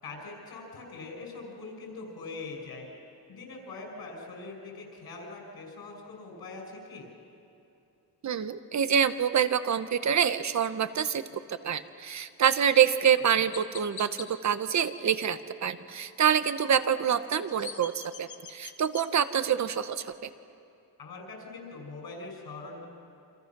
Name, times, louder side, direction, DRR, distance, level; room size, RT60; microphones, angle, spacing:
voice 1, 0.0-2.9 3.3-7.1 13.3-13.5 21.0-22.8, left 3 dB, 70° left, 1 dB, 6.3 m, -42 dB
voice 2, 8.2-11.2 11.5-20.3, right 8 dB, 45° right, 12 dB, 1.0 m, -26 dB
Chirp tweet, 12.6-12.8 13.5-14.3 17.2-19.1, left 6 dB, 50° left, 1.7 m, -43 dB
29.0 x 27.0 x 6.1 m, 2.7 s
wide cardioid pair, 175°, 38 cm